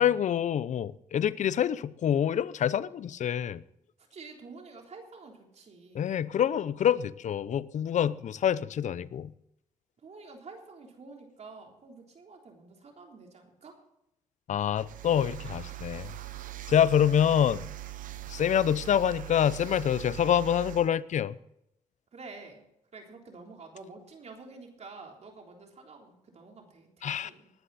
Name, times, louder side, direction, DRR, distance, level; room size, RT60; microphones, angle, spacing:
voice 1, 0.0-3.6 5.9-9.3 14.5-16.1 16.7-17.7 18.3-21.4 27.0-27.3, left 9 dB, 65° left, 0.6 m, -26 dB
voice 2, 4.1-6.1 10.0-13.7 22.1-22.6 22.9-27.5, right 4 dB, 55° right, 3.6 m, -48 dB
sound 1, 14.7-20.9, right 15 dB, 85° right, 0.9 m, -41 dB
19.5 x 10.0 x 4.2 m
cardioid pair, 85°, 13 cm